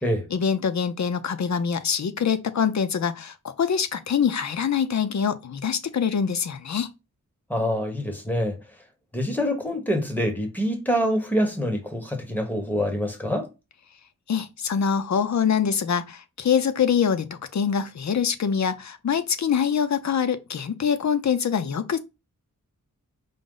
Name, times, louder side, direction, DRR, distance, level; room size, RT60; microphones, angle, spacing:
voice 1, 0.3-6.9 14.3-22.0, left 7 dB, 55° left, 0.5 m, -24 dB
voice 2, 7.5-8.6 9.1-13.5, equal, 5° left, 1.0 m, -25 dB
5.1 x 2.0 x 3.7 m
wide cardioid pair, 110°, 34 cm